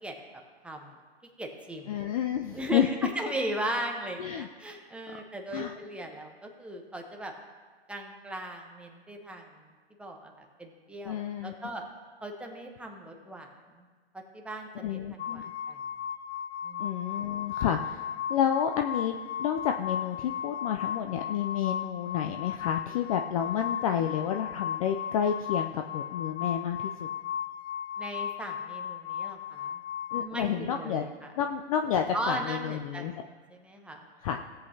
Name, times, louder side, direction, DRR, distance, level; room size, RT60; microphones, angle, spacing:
voice 1, 0.6-1.0 1.4-2.0 2.5-7.3 7.9-9.4 10.0-11.8 12.2-13.8 14.3-15.8 16.6-16.9 28.0-29.8 30.1-31.3 32.1-33.1 33.5-34.0, right 1 dB, 5° right, 1 dB, 0.8 m, -37 dB
voice 2, 1.9-2.9 4.2-4.5 5.5-5.8 11.0-11.6 14.8-15.4 16.8-27.1 30.1-31.0 31.4-33.1 34.2-34.4, left 9 dB, 35° left, 6 dB, 0.4 m, -30 dB
sound 1, 15.2-30.2, left 9 dB, 70° left, 0.7 m, -36 dB
17.0 x 7.8 x 2.8 m, 1.4 s
hypercardioid pair, 130°, 34 cm